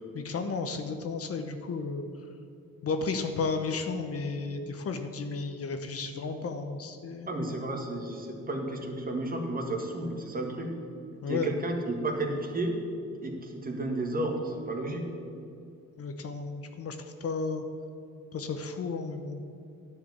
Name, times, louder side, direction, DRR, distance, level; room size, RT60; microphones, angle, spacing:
voice 1, 0.1-2.1 2.8-7.3 11.2-11.5 16.0-17.6 18.3-19.4, left 4 dB, 50° left, 7 dB, 0.9 m, -33 dB
voice 2, 7.3-10.7 11.2-12.8 13.2-15.1, right 2 dB, 30° right, 2 dB, 1.7 m, -32 dB
10.5 x 4.9 x 8.2 m, 2.5 s
cardioid pair, 90°, 30 cm